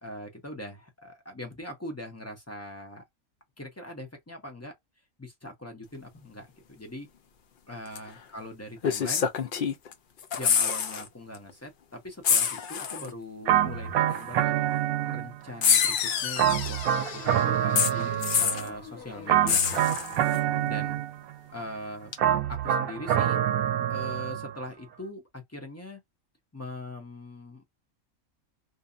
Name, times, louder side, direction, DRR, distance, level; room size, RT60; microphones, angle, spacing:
voice 1, 0.0-3.0 3.6-4.7 5.2-7.1 7.7-9.3 10.4-20.0 20.6-21.0 21.5-22.1 22.5-23.4 23.9-26.0 26.5-27.7, left 1 dB, 20° left, 0.4 m, -41 dB
sound 1, 7.9-8.1 8.8-9.9 10.2-11.0 11.3-11.5 12.2-13.1 14.1-14.2 15.6-16.7 17.7-18.7 19.5-20.4 22.1-22.2, left 7 dB, 90° left, 0.4 m, -26 dB
sound 2, 13.5-15.5 16.4-18.8 19.3-21.4 22.2-24.6, right 11 dB, 80° right, 1.1 m, -26 dB
sound 3, 15.7-20.9, left 8 dB, 70° left, 1.0 m, -36 dB
2.7 x 2.3 x 2.4 m
omnidirectional pair, 1.5 m